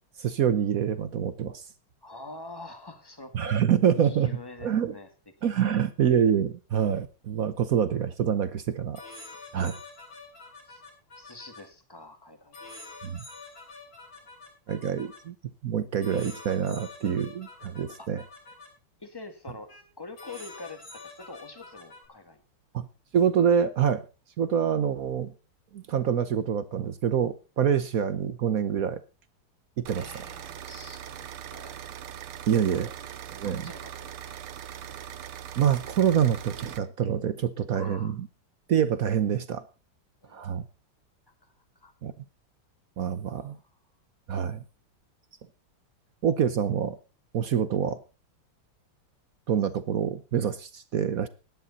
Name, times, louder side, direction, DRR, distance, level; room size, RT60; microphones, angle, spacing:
voice 1, 0.2-1.6 3.3-4.3 4.6-4.9 5.4-9.0 9.5-9.7 13.0-13.2 14.7-15.3 15.6-18.2 22.7-22.9 23.1-24.0 24.4-25.3 25.7-29.0 29.8-30.2 32.5-32.9 33.3-33.7 35.6-38.3 38.7-39.6 40.3-40.7 42.0-42.1 43.0-43.6 44.3-44.6 46.2-47.0 47.3-48.0 49.5-51.3, right 8 dB, 60° right, 13 dB, 0.9 m, -26 dB
voice 2, 2.0-3.4 3.9-5.1 5.4-5.7 9.5-9.7 10.7-10.8 11.1-12.7 18.0-18.1 19.0-22.4 29.9-31.7 32.7-32.8 33.4-34.4 37.7-38.2 40.2-40.4 41.4-41.9 43.3-43.6, left 3 dB, 10° left, 7 dB, 1.7 m, -46 dB
sound 1, 8.9-11.6 12.5-15.2 16.0-18.7 19.7-19.8 20.2-22.1, left 3 dB, 60° left, 6.5 m, -46 dB
sound 2, 29.9-36.8, right 10 dB, 80° right, 1.8 m, -41 dB
16.5 x 10.5 x 4.1 m, 0.32 s
omnidirectional pair, 2.4 m